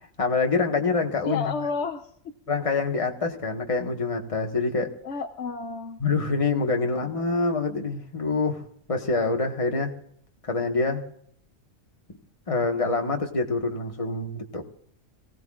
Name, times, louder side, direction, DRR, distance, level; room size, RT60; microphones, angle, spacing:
voice 1, 0.2-1.5 2.5-4.9 6.0-8.6 8.9-9.9 10.5-11.0 12.5-14.6, left 3 dB, 25° left, 2 dB, 1.5 m, -26 dB
voice 2, 1.2-2.3 5.0-6.0 6.9-7.3, left 5 dB, 65° left, 4 dB, 1.0 m, -32 dB
26.5 x 17.0 x 2.5 m, 0.66 s
omnidirectional pair, 1.4 m